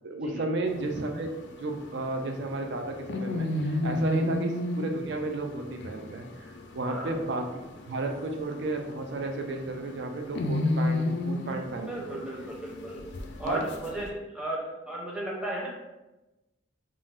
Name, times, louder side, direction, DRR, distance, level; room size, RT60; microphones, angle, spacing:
voice 1, 0.0-12.2 13.4-13.6, right 2 dB, 60° right, 4 dB, 0.4 m, -33 dB
sound 1, 0.7-14.1, left 1 dB, 65° left, 0.4 m, -34 dB
voice 2, 6.9-7.2 11.7-13.1 13.4-15.7, right 1 dB, 5° right, -4 dB, 0.6 m, -35 dB
3.7 x 2.0 x 2.4 m, 1.0 s
head